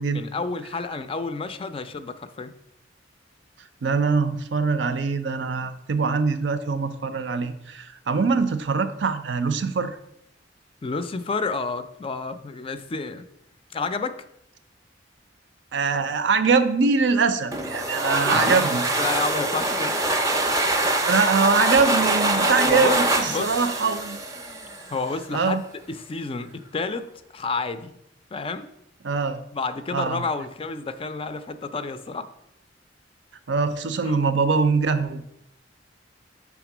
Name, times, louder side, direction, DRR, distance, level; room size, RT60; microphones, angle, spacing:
voice 1, 0.1-2.5 10.8-13.2 13.7-14.2 18.2-20.0 22.6-23.5 24.9-25.6 25.9-27.1 27.3-27.9 28.3-28.7 29.5-32.3 34.1-34.2, left 4 dB, 30° left, 11 dB, 0.4 m, -30 dB
voice 2, 3.8-10.0 15.7-18.8 21.0-24.2 25.3-25.6 29.0-29.4 29.9-30.2 33.5-35.3, right 4 dB, 70° right, 11 dB, 0.5 m, -23 dB
sound 1, 17.5-25.0, right 2 dB, 20° right, 0.6 m, -24 dB
5.9 x 3.6 x 5.9 m, 0.81 s
head